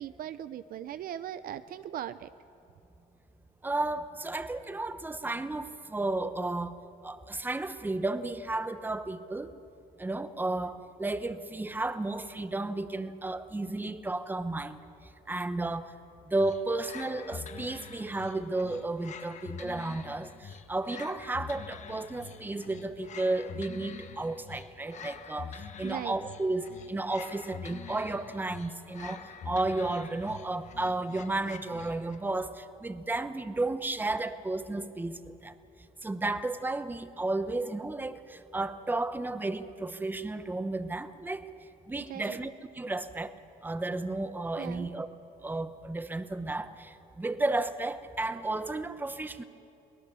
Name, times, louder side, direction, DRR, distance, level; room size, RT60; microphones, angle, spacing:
voice 1, 0.0-2.3 25.8-26.2 42.1-42.4 44.6-44.9, right 11 dB, 60° right, 13 dB, 0.6 m, -39 dB
voice 2, 3.6-9.5 10.0-14.8 15.3-15.9 16.3-35.5 36.0-41.5 41.9-43.3 43.6-45.1 45.4-49.4, right 2 dB, 10° right, 11 dB, 0.9 m, -33 dB
sound 1, 16.4-32.3, left 6 dB, 45° left, 1.2 m, -46 dB
23.0 x 18.5 x 7.0 m, 2.7 s
cardioid pair, 110°, 17 cm